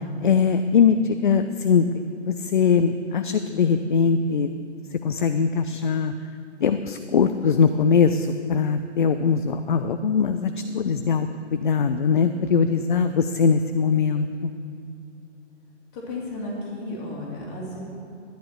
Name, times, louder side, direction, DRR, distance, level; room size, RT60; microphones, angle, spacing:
voice 1, 0.2-1.9 2.3-4.5 5.0-6.1 6.6-14.5, left 6 dB, 45° left, 9 dB, 0.5 m, -21 dB
voice 2, 15.9-17.8, left 2 dB, 25° left, -4 dB, 2.9 m, -33 dB
13.0 x 10.5 x 4.5 m, 2.6 s
figure-of-eight pair, 140°, 37 cm